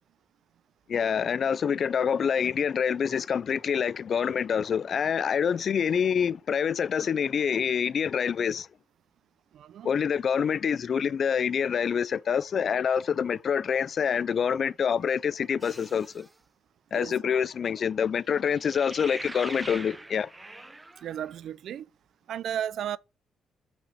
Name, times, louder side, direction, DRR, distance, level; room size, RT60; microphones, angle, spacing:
voice 1, 0.9-8.7 9.8-16.3 16.9-20.3, left 7 dB, 50° left, 0.3 m, -26 dB
voice 2, 9.5-9.9 16.9-17.3 21.0-21.9 22.3-23.0, right 10 dB, 70° right, 0.4 m, -34 dB
sound 1, 15.6-16.3 18.4-21.3, right 2 dB, 15° right, 0.7 m, -42 dB
5.2 x 5.0 x 5.5 m
cardioid pair, 90°, 0 cm